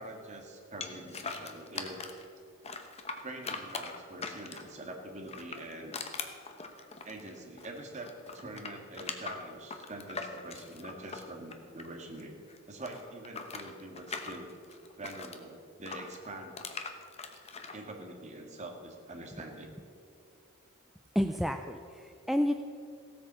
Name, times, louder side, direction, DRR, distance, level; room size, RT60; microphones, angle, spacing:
voice 1, 0.0-2.0 3.2-6.0 7.0-14.5 15.0-16.5 17.7-19.8, right 1 dB, 30° right, 2 dB, 1.8 m, -44 dB
sound 1, 0.8-2.2 2.6-4.8 5.2-7.8 8.0-12.2 12.5-15.4 15.9-17.8, left 4 dB, 30° left, 1.0 m, -41 dB
voice 2, 21.2-22.5, equal, ahead, 6 dB, 0.3 m, -30 dB
16.0 x 8.6 x 6.8 m, 2.4 s
head